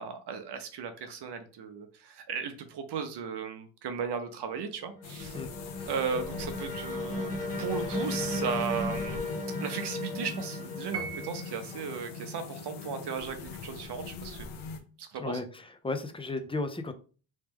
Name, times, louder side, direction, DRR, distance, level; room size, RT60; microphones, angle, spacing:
voice 1, 0.0-5.4 5.9-14.5 15.0-15.4, right 6 dB, 55° right, 7 dB, 0.8 m, -36 dB
sound 1, 4.8-12.4, left 2 dB, 30° left, 1.2 m, -36 dB
sound 2, 5.0-14.8, left 4 dB, 85° left, 1.0 m, -42 dB
voice 2, 5.3-5.9 15.2-16.9, left 3 dB, 10° left, 8 dB, 0.6 m, -35 dB
Piano, 10.9-11.8, right 6 dB, 30° right, 1.0 m, -39 dB
3.2 x 3.1 x 3.5 m, 0.38 s
supercardioid pair, 80°, 49 cm